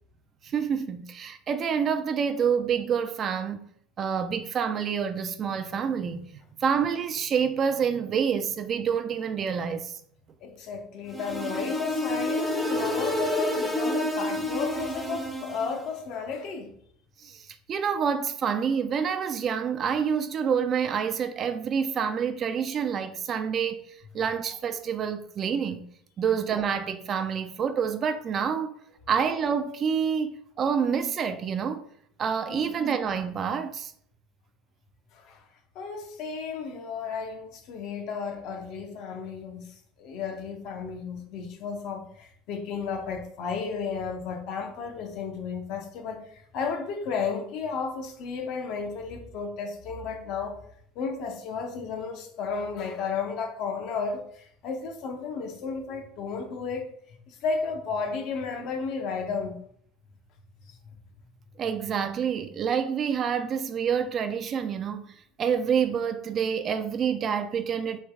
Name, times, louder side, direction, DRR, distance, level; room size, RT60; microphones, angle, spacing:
voice 1, 0.4-3.7 4.0-10.0 17.2-23.8 24.1-25.8 26.2-28.7 29.1-31.8 32.2-33.9 61.6-68.0, right 7 dB, 30° right, 0.4 m, -27 dB
voice 2, 10.4-16.7 32.5-32.7 35.1-35.4 35.7-50.6 50.9-59.6, left 5 dB, 55° left, 0.8 m, -33 dB
sound 1, 11.1-15.9, left 1 dB, 5° left, 0.6 m, -29 dB
3.3 x 3.1 x 4.7 m
supercardioid pair, 140°, 0 cm